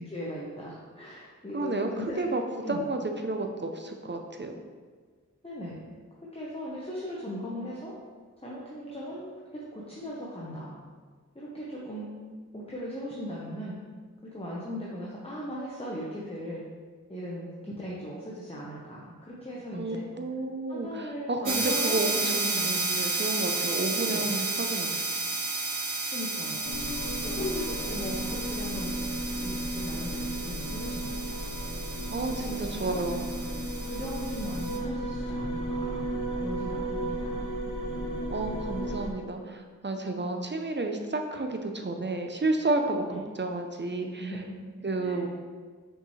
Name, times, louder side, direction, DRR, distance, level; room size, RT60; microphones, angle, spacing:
voice 1, 0.0-2.3 2.6-2.8 5.4-5.8 6.2-7.9 8.4-10.8 11.3-12.1 12.5-13.8 14.2-16.6 17.1-20.0 20.7-22.9 24.0-24.3 26.1-26.6 27.3-31.4 32.3-33.1 33.9-36.1 36.3-37.5 43.1-43.2 44.2-44.6 45.0-45.2, equal, 20° left, -5 dB, 1.0 m, -38 dB
voice 2, 1.5-1.9 2.2-2.4 2.7-4.5 19.8-25.0 32.1-33.3 38.3-43.0 43.4-44.3 44.8-45.3, right 2 dB, 40° right, 4 dB, 0.7 m, -31 dB
sound 1, 21.5-34.8, right 3 dB, 90° right, 0.8 m, -32 dB
sound 2, 26.6-39.1, right 1 dB, 85° left, 0.7 m, -34 dB
6.1 x 5.3 x 3.2 m, 1.5 s
wide cardioid pair, 50°, 30 cm